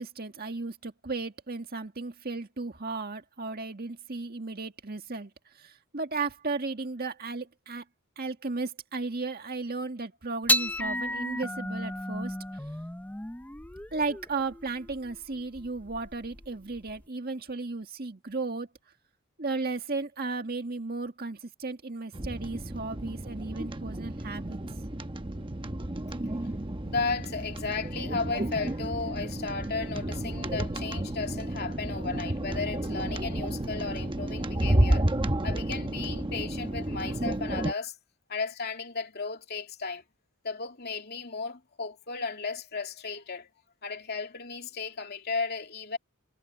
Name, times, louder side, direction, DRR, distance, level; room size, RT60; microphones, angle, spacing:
voice 1, 0.0-7.8 8.2-12.4 13.9-18.7 19.4-24.6, right 3 dB, 45° right, 1.8 m, -35 dB
sound 1, 10.5-17.0, equal, 5° left, 0.6 m, -33 dB
sound 2, 22.1-37.7, right 1 dB, 25° right, 1.0 m, -31 dB
voice 2, 26.8-35.1 35.4-37.9 38.3-40.0 40.4-43.5 43.8-46.0, left 4 dB, 50° left, 2.7 m, -34 dB
head